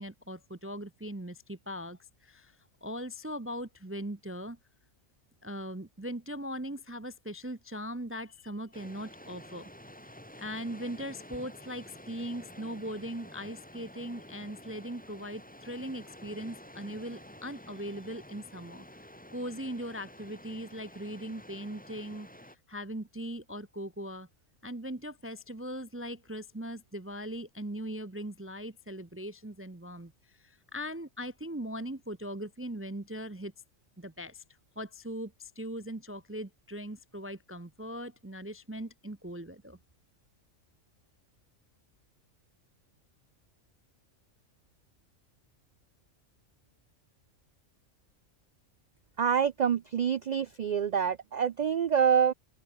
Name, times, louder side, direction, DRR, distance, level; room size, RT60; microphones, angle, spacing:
voice 1, 0.0-2.6 2.8-4.6 5.4-9.7 10.4-18.9 19.3-22.3 22.7-24.3 24.6-30.1 30.4-33.5 34.0-34.4 34.8-39.8, equal, 15° right, 0.6 m, -39 dB
sound 1, 8.7-22.6, left 1 dB, 5° left, 2.3 m, -50 dB
voice 2, 49.2-52.3, right 7 dB, 85° right, 0.3 m, -26 dB
open air
omnidirectional pair, 1.3 m